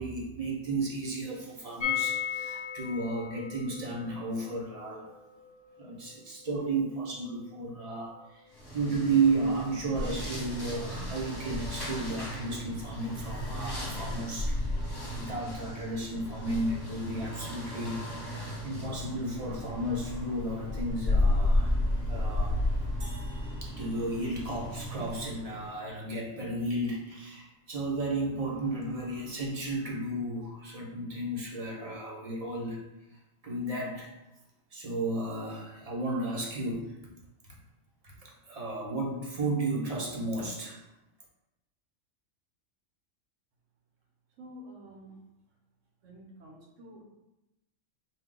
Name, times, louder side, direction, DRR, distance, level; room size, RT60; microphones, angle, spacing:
voice 1, 0.0-5.1 5.8-14.6 15.0-21.8 22.1-22.5 23.6-32.8 33.1-34.1 34.7-37.0 38.0-40.8, right 2 dB, 35° right, -2 dB, 0.7 m, -33 dB
sound 1, 1.8-7.6 7.8-7.9 8.2-8.3, left 10 dB, 70° left, 0.4 m, -37 dB
sound 2, 8.5-25.7, left 1 dB, 20° left, 1.0 m, -33 dB
sound 3, 23.0-25.4, right 1 dB, 90° right, 1.4 m, -54 dB
voice 2, 44.4-45.3 46.0-47.0, equal, 70° right, -1 dB, 1.2 m, -49 dB
4.4 x 2.3 x 3.7 m, 0.94 s
omnidirectional pair, 1.3 m